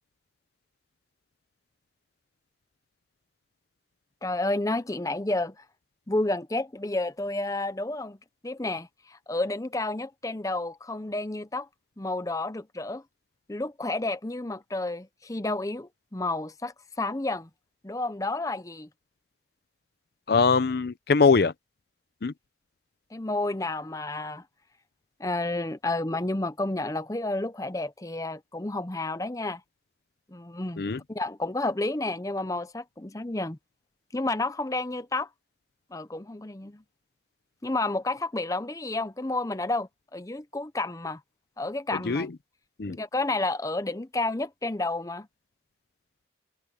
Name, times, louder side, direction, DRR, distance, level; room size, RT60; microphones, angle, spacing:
voice 1, 4.2-5.6 6.1-8.2 8.4-11.7 12.0-13.0 13.5-17.5 17.8-18.9 23.1-24.4 25.2-29.6 30.3-30.8 31.1-33.6 34.1-35.3 35.9-36.8 37.6-41.2 41.6-42.3 42.9-45.3, left 2 dB, 20° left, 0.7 m, -30 dB
voice 2, 20.3-21.5 22.2-22.3 30.8-31.0 41.9-42.3 42.8-43.0, left 4 dB, 55° left, 0.6 m, -22 dB
head